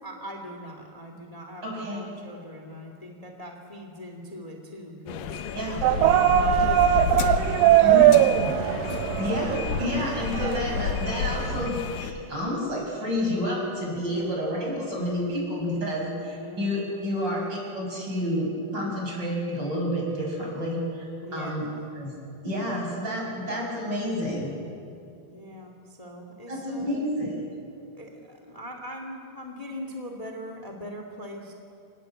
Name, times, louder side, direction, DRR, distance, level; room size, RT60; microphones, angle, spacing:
voice 1, 0.0-8.4 8.8-9.1 16.4-17.2 21.2-21.6 25.3-26.9 27.9-31.5, equal, 20° left, 3 dB, 0.9 m, -40 dB
voice 2, 1.6-2.0 5.5-5.8 7.8-8.1 9.2-21.6 21.9-22.1 22.4-24.5 26.5-27.4, left 1 dB, 25° right, -1 dB, 6.7 m, -29 dB
sound 1, 5.1-12.1, left 8 dB, 70° left, 2.7 m, -31 dB
sound 2, 5.8-11.7, right 12 dB, 85° right, 2.8 m, -21 dB
27.0 x 19.0 x 8.6 m, 2.6 s
omnidirectional pair, 4.6 m